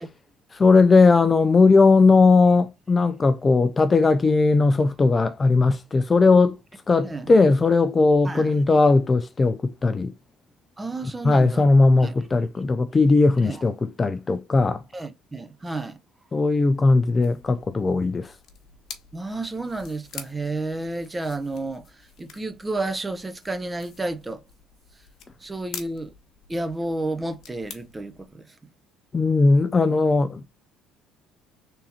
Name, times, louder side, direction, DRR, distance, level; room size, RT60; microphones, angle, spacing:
voice 1, 0.5-6.5 6.9-10.1 11.2-14.8 16.3-18.3 29.1-30.4, left 3 dB, 25° left, 0.3 m, -18 dB
voice 2, 10.8-11.6 12.0-12.2 13.4-13.6 14.9-16.0 19.1-24.4 25.4-26.1 26.5-28.5, right 2 dB, 15° right, 0.7 m, -31 dB
sound 1, 17.2-28.3, left 7 dB, 60° left, 1.1 m, -46 dB
3.5 x 2.8 x 4.2 m
supercardioid pair, 80°, 0 cm